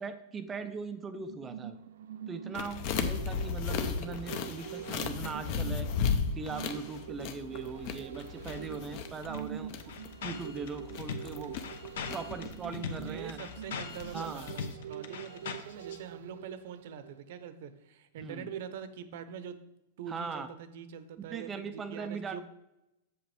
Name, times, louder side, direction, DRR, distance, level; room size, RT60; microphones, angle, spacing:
voice 1, 0.0-1.8 2.3-5.9 6.3-9.8 10.2-11.6 12.1-13.4 14.1-14.5 18.2-18.5 20.1-20.5 21.3-22.4, right 4 dB, 15° right, 10 dB, 0.4 m, -40 dB
sound 1, 1.2-17.4 17.8-17.9, right 10 dB, 85° right, 0.4 m, -45 dB
sound 2, 2.5-14.7, left 6 dB, 35° left, 0.6 m, -36 dB
sound 3, 8.1-8.6 8.9-9.0 9.2-16.0, left 6 dB, 70° left, 0.9 m, -41 dB
voice 2, 12.8-19.6 20.0-22.4, right 7 dB, 50° right, 12 dB, 0.7 m, -44 dB
7.8 x 7.7 x 3.3 m, 0.89 s
supercardioid pair, 175°, 0 cm